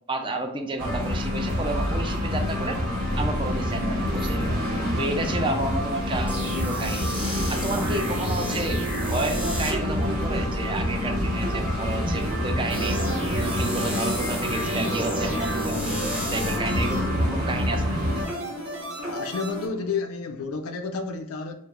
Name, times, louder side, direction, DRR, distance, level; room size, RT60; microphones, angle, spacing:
voice 1, 0.1-2.8 3.1-4.5 5.0-7.1 7.5-13.0 13.4-18.0, right 2 dB, 25° right, 5 dB, 0.4 m, -31 dB
sound 1, 0.8-18.2, left 1 dB, 80° right, 1.1 m, -27 dB
sound 2, 6.3-20.0, equal, 5° right, 1.0 m, -33 dB
sound 3, 11.8-19.7, equal, 50° right, 1.0 m, -36 dB
voice 2, 19.0-21.6, left 4 dB, 80° left, 6 dB, 0.4 m, -30 dB
4.7 x 2.0 x 3.6 m, 0.72 s
head